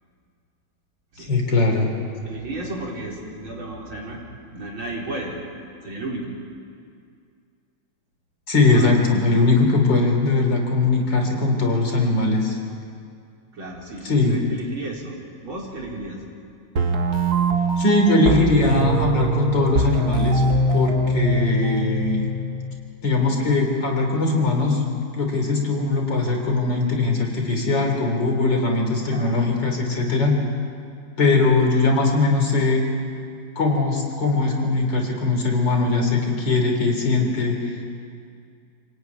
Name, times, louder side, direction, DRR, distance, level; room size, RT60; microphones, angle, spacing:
voice 1, 1.2-1.9 8.5-12.6 14.0-14.4 17.8-20.4 20.7-22.3 23.0-24.8 25.1-30.4 31.2-32.9 33.6-37.8, left 3 dB, 55° left, 2 dB, 4.3 m, -20 dB
voice 2, 2.2-4.2 4.5-5.4 5.8-6.3 8.7-8.9 13.5-16.2 29.1-29.4, right 2 dB, 70° right, -2 dB, 5.0 m, -33 dB
sound 1, 16.8-22.8, right 2 dB, 45° right, 2.1 m, -22 dB
27.5 x 18.0 x 9.7 m, 2.3 s
omnidirectional pair, 2.3 m